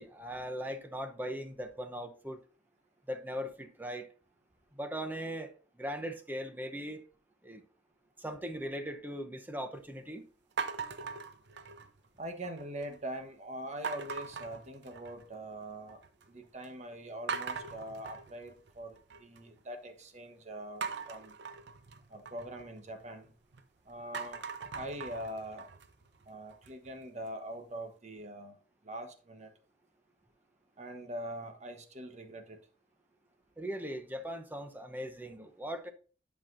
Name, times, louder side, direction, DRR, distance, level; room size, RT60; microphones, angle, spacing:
voice 1, 0.0-2.4 3.1-4.1 4.7-5.5 5.8-7.0 7.4-7.6 8.2-10.3 33.6-35.9, equal, 10° right, 0.7 m, -39 dB
sound 1, 10.6-12.1 12.4-13.0 13.8-15.4 15.7-16.3 16.6-16.7 17.3-19.4 20.8-23.6 24.0-26.9, right 5 dB, 65° right, 0.7 m, -41 dB
voice 2, 12.2-16.0 16.3-21.3 22.1-23.3 23.8-24.4 24.7-25.7 26.3-28.6 28.8-29.5 30.8-32.6, right 1 dB, 40° right, 1.1 m, -43 dB
10.5 x 5.8 x 2.6 m
head